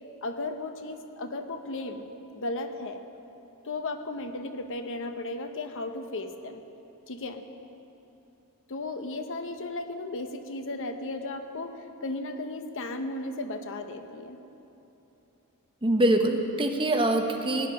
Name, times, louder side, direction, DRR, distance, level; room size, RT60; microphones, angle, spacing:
voice 1, 0.2-3.0 3.6-6.6 7.1-7.4 8.7-14.4, left 2 dB, 60° left, 7 dB, 0.9 m, -35 dB
voice 2, 15.8-17.7, right 1 dB, 25° right, 4 dB, 0.9 m, -24 dB
17.5 x 10.5 x 5.5 m, 3.0 s
head